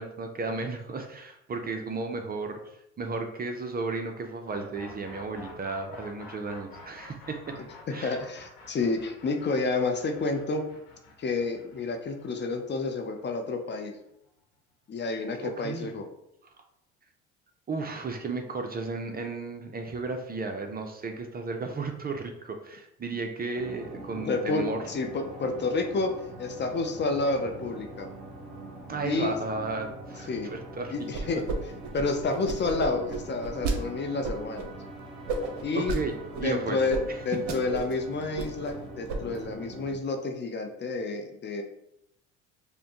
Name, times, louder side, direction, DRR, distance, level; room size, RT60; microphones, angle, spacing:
voice 1, 0.0-2.6 3.0-7.6 7.9-8.2 15.4-15.9 17.7-24.8 28.9-30.9 35.7-36.8, right 3 dB, 25° right, 5 dB, 0.6 m, -34 dB
sound 1, 4.4-14.3, left 3 dB, 75° left, 1.2 m, -49 dB
voice 2, 8.0-10.6 11.2-13.9 14.9-16.1 24.1-26.1 26.4-28.1 29.0-29.3 30.3-30.5 30.9-34.7 35.6-36.0 36.4-41.6, left 3 dB, 30° left, 4 dB, 0.6 m, -30 dB
sound 2, 23.6-39.9, right 2 dB, ahead, 1.3 m, -43 dB
sound 3, 31.1-31.6 31.8-33.8 34.2-34.7 35.3-36.0 36.3-36.5 36.9-37.0 37.3-37.9 38.2-38.8 39.1-39.4, right 3 dB, 55° right, 0.8 m, -32 dB
5.2 x 2.2 x 2.9 m, 0.79 s
hypercardioid pair, 70°, 34 cm